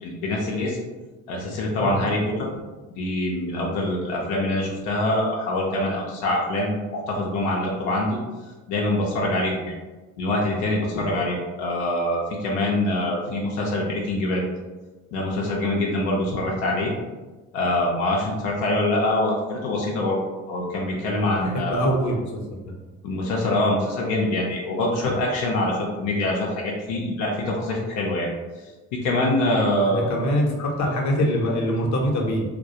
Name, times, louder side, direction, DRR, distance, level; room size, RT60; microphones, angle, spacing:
voice 1, 0.0-0.8 1.3-2.5 3.0-8.2 8.7-9.7 10.2-14.4 15.1-16.9 17.5-20.2 20.5-21.9 23.0-28.3 28.9-30.1, left 1 dB, 85° left, -2 dB, 0.5 m, -24 dB
voice 2, 21.2-22.6 29.8-32.4, equal, 45° left, 0 dB, 0.7 m, -24 dB
2.2 x 2.1 x 2.7 m, 1.2 s
hypercardioid pair, 50°, 40 cm